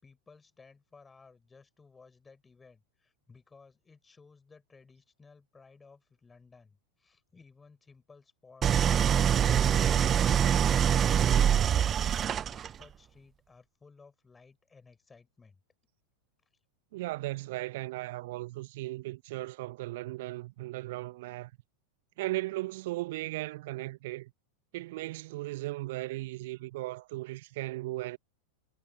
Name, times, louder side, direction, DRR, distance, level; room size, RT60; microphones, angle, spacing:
voice 1, 0.0-10.4 10.7-15.6, left 4 dB, 15° left, 7.6 m, -58 dB
Idling, 8.6-12.8, right 9 dB, 25° right, 0.4 m, -24 dB
voice 2, 16.9-21.5 22.2-24.3 24.7-28.2, right 19 dB, 50° right, 1.4 m, -37 dB
figure-of-eight pair, 90°, 0 cm